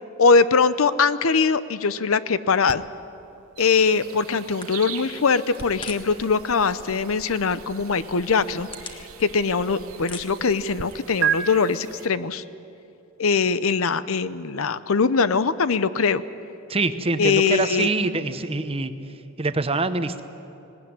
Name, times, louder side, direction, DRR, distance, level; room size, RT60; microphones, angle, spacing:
voice 1, 0.2-2.8 3.6-8.7 9.2-12.4 13.2-16.2 17.2-17.9, left 5 dB, 75° left, 15 dB, 0.7 m, -21 dB
sound 1, 2.7-10.8 11.2-11.4, right 9 dB, 55° right, 0.6 m, -35 dB
sound 2, 3.5-12.1, right 8 dB, 85° right, 2.0 m, -44 dB
sound 3, 4.6-6.3 6.5-7.1 7.6-7.7 8.2-9.6 9.9-11.2, left 3 dB, 25° left, 1.6 m, -41 dB
voice 2, 16.7-18.9 19.4-20.2, right 3 dB, 25° right, 10 dB, 0.9 m, -24 dB
19.0 x 18.5 x 9.6 m, 2.9 s
head